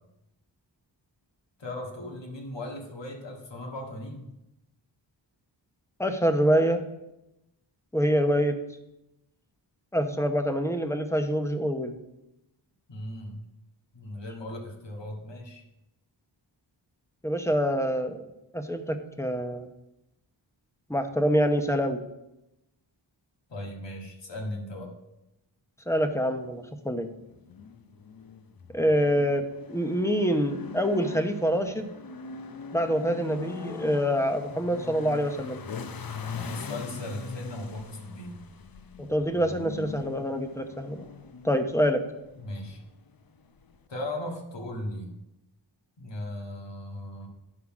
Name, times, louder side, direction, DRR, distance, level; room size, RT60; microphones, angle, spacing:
voice 1, 1.6-4.3 12.9-13.4 13.9-15.6 23.5-24.9 36.3-38.4 42.4-42.8 43.9-45.1 46.0-47.3, left 1 dB, 70° left, 1 dB, 1.8 m, -37 dB
voice 2, 6.0-6.8 7.9-8.5 9.9-12.0 17.2-18.2 18.5-19.7 20.9-22.0 25.9-27.1 28.7-31.9 32.7-35.6 39.0-41.0 41.4-42.0, equal, 5° left, 7 dB, 0.9 m, -26 dB
sound 1, 27.2-43.9, left 5 dB, 50° left, 0.7 m, -42 dB
9.8 x 5.7 x 4.9 m, 0.92 s
wide cardioid pair, 75°, 45 cm